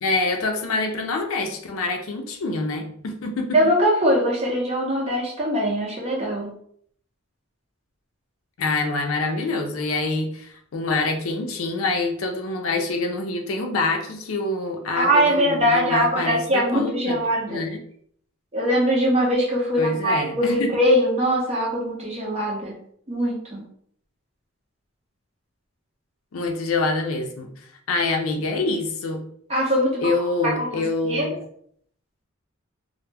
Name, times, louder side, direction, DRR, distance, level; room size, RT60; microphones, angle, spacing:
voice 1, 0.0-3.6 8.6-17.1 17.5-17.8 19.8-20.7 26.3-29.2 30.0-31.4, left 3 dB, 70° left, 3 dB, 0.4 m, -26 dB
voice 2, 3.5-6.5 14.9-17.6 18.5-22.7 23.1-23.6 29.5-30.1 30.4-31.3, equal, 30° right, -3 dB, 0.7 m, -22 dB
2.1 x 2.0 x 3.2 m, 0.65 s
head